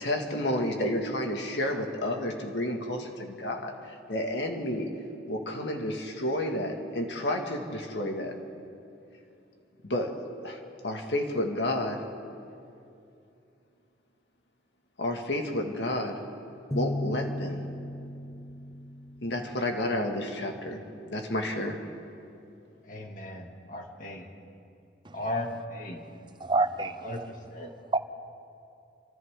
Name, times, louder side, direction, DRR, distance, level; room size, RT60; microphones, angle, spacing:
voice 1, 0.0-4.9 5.3-8.4 9.8-12.1 15.0-16.3 16.7-17.7 19.2-20.8 21.1-21.8, left 1 dB, 80° left, 2 dB, 2.1 m, -31 dB
sound 1, 16.7-20.4, left 1 dB, 15° left, 0.6 m, -36 dB
voice 2, 22.9-24.2 25.1-26.0 27.0-27.2 27.5-27.7, left 1 dB, 45° left, 1 dB, 2.5 m, -36 dB
voice 3, 26.4-27.3 27.9-28.0, right 2 dB, 25° right, 10 dB, 0.6 m, -28 dB
28.0 x 26.0 x 3.8 m, 2.6 s
head